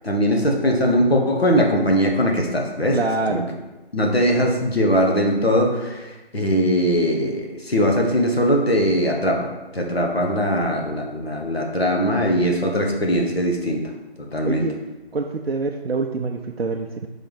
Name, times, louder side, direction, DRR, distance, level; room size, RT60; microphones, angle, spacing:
voice 1, 0.0-3.0 3.3-3.4 3.9-9.5 9.7-13.8 14.2-14.7, equal, 70° left, 1 dB, 1.3 m, -20 dB
voice 2, 2.9-3.5 14.4-14.8 15.1-17.1, right 3 dB, 75° right, 2 dB, 0.5 m, -25 dB
5.6 x 3.5 x 5.6 m, 1.1 s
figure-of-eight pair, 175°, 32 cm